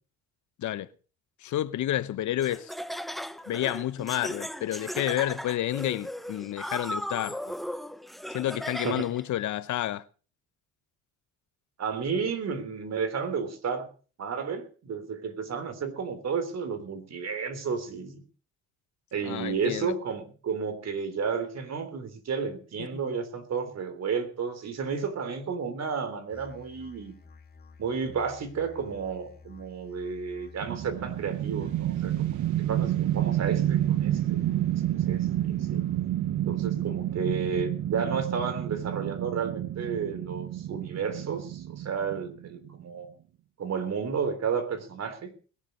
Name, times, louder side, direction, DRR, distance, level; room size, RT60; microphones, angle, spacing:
voice 1, 1.4-2.7 3.5-7.4 8.3-10.0 19.2-19.9 22.8-23.0, left 13 dB, 70° left, 0.9 m, -30 dB
Laughter, 2.4-9.2, equal, ahead, 0.7 m, -37 dB
voice 2, 11.8-13.9 14.2-18.2 19.1-27.1 27.8-35.9 36.5-43.1 43.6-45.3, right 6 dB, 60° right, 3.5 m, -32 dB
Musical instrument, 26.3-36.3, left 5 dB, 30° left, 2.0 m, -51 dB
sound 1, 30.6-42.8, right 12 dB, 75° right, 0.8 m, -29 dB
21.0 x 7.5 x 6.4 m
cardioid pair, 90°, 30 cm